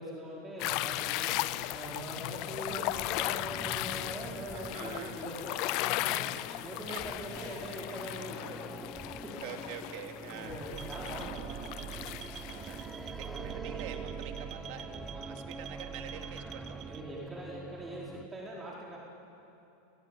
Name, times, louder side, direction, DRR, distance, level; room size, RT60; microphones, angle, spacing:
voice 1, 0.0-1.4 1.7-6.2 6.6-8.9 10.3-12.0 13.2-13.5 16.9-19.0, right 1 dB, 15° right, -4 dB, 4.7 m, -42 dB
sound 1, 0.6-12.9, left 18 dB, 55° left, 0.6 m, -36 dB
sound 2, 2.7-18.3, equal, ahead, 1.2 m, -47 dB
voice 2, 4.5-5.2 6.1-6.5 6.9-7.0 7.4-7.8 9.4-10.6 12.5-17.2, right 9 dB, 60° right, 4 dB, 2.8 m, -47 dB
sound 3, 10.7-17.0, right 9 dB, 40° right, 1.2 m, -43 dB
29.0 x 19.0 x 9.1 m, 2.9 s
hypercardioid pair, 115°, 0 cm